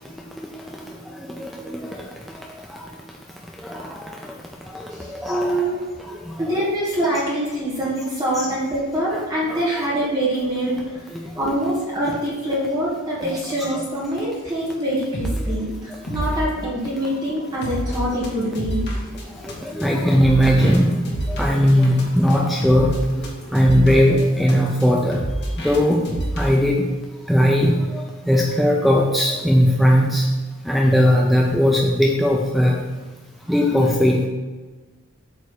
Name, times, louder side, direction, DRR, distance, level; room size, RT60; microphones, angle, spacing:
voice 1, 1.2-1.9 3.7-3.8 5.2-5.6 9.1-9.2 9.5-9.6 13.6-13.7 19.8-21.0 21.4-22.9 23.5-25.2 25.6-26.0 26.4-26.8 27.3-27.7 28.3-30.2 30.7-32.7 33.5-34.2, equal, ahead, -1 dB, 0.5 m, -18 dB
voice 2, 5.0-5.9 6.4-11.0 11.4-18.8, right 1 dB, 20° right, -7 dB, 1.6 m, -24 dB
sound 1, 14.7-14.8 15.0-15.5 15.9-26.5, right 1 dB, 50° left, 1.6 m, -28 dB
8.3 x 3.6 x 6.6 m, 1.3 s
head